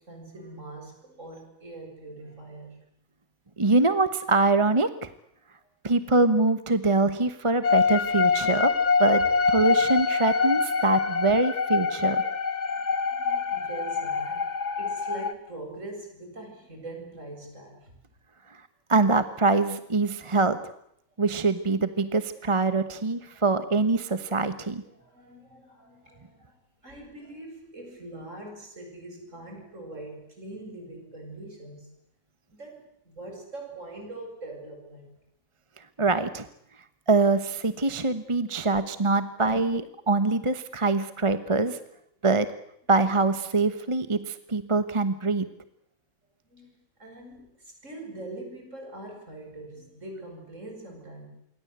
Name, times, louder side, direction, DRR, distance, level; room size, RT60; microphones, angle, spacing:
voice 1, 0.0-2.8 12.3-18.0 24.8-31.9 32.5-35.2 46.5-51.3, right 2 dB, 60° right, 2 dB, 8.3 m, -43 dB
voice 2, 3.6-5.1 5.8-8.7 9.0-12.2 18.9-20.6 21.2-24.8 36.0-36.5 37.1-41.8 42.2-42.5 42.9-45.5, right 3 dB, 25° right, 11 dB, 1.1 m, -24 dB
sound 1, 7.6-15.3, left 5 dB, 55° left, 1.7 m, -25 dB
27.5 x 23.5 x 8.1 m, 0.74 s
omnidirectional pair, 1.5 m